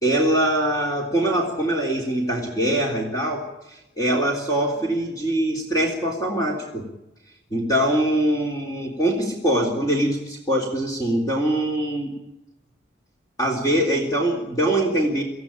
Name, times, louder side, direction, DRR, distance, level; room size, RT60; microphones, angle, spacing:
voice 1, 0.0-6.8 7.5-12.1 13.4-15.2, right 1 dB, 20° left, -1 dB, 3.6 m, -23 dB
25.5 x 16.0 x 8.7 m, 0.93 s
head